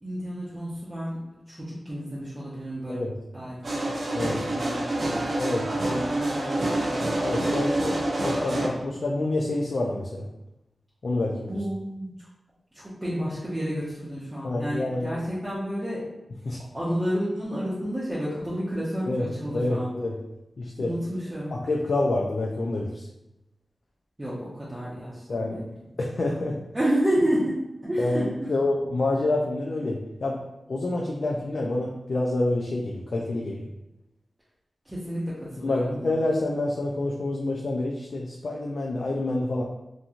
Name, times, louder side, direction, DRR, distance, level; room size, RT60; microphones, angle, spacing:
voice 1, 0.0-1.2 1.5-3.0 3.3-3.9 4.2-5.7 5.9-7.1 11.5-12.3 12.7-16.0 16.7-19.9 20.8-21.5 24.2-25.6 26.7-27.5 27.8-28.5 34.8-36.1, equal, 20° right, -9 dB, 0.7 m, -30 dB
sound 1, 3.6-8.7, right 1 dB, 55° right, 0.5 m, -27 dB
voice 2, 5.4-6.1 7.2-10.3 11.0-11.6 14.4-15.2 16.5-16.6 19.1-19.3 19.5-20.2 20.6-20.9 21.5-23.1 25.3-25.6 26.0-26.6 28.0-30.4 30.7-33.7 35.6-39.6, left 2 dB, 65° left, -1 dB, 0.3 m, -27 dB
2.9 x 2.6 x 2.4 m, 0.91 s
wide cardioid pair, 100°, 0 cm